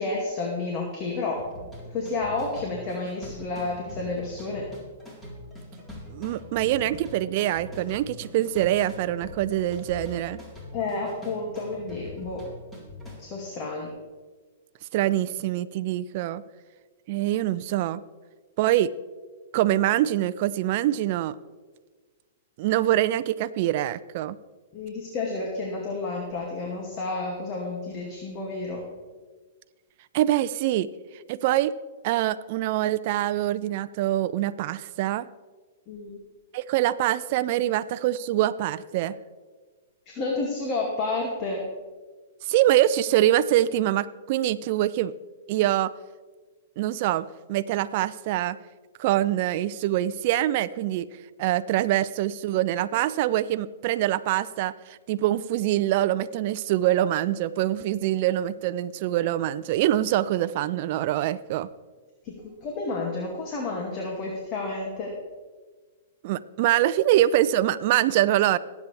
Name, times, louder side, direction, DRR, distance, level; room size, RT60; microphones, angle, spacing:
voice 1, 0.0-1.4 1.9-4.7 10.7-12.4 13.2-13.9 24.7-28.8 35.9-36.2 40.1-41.6 62.2-65.1, left 3 dB, 35° left, -1 dB, 2.3 m, -30 dB
sound 1, 1.4-13.2, left 1 dB, 10° left, 4.0 m, -43 dB
voice 2, 6.1-10.4 14.9-16.4 17.1-18.0 18.6-18.9 19.5-21.3 22.6-24.4 30.1-30.9 31.3-31.7 32.0-35.3 36.5-39.2 42.4-45.1 45.5-45.9 46.8-48.6 49.0-51.1 51.4-61.7 66.2-68.6, right 13 dB, 50° right, 13 dB, 0.5 m, -24 dB
20.5 x 8.4 x 3.4 m, 1.4 s
hypercardioid pair, 130°, 0 cm